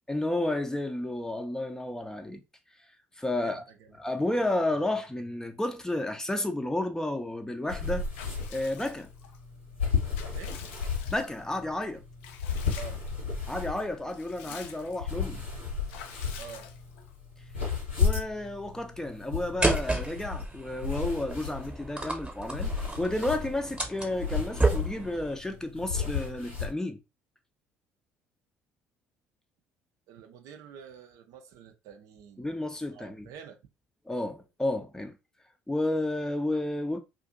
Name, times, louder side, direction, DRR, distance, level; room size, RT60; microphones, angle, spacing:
voice 1, 0.1-2.4 3.2-3.6 4.0-8.1 8.5-9.1 11.1-12.0 13.5-15.4 18.0-27.0 32.4-33.3 34.1-35.1 35.7-37.0, left 1 dB, 10° left, 0.5 m, -31 dB
voice 2, 3.3-4.0 10.3-10.6 11.0-11.1 12.7-13.0 16.4-16.7 30.1-32.5 32.9-33.6, right 7 dB, 60° right, 0.4 m, -47 dB
sound 1, 7.7-26.7, left 6 dB, 90° left, 1.3 m, -34 dB
Water / Bathtub (filling or washing) / Liquid, 8.1-9.4 9.8-11.6 12.2-13.2 13.5-13.6 13.9-15.1 15.9-17.2, left 8 dB, 70° left, 0.4 m, -48 dB
sound 2, 19.6-25.3, right 2 dB, 15° right, 1.0 m, -31 dB
2.5 x 2.5 x 2.5 m
figure-of-eight pair, 55°, 6 cm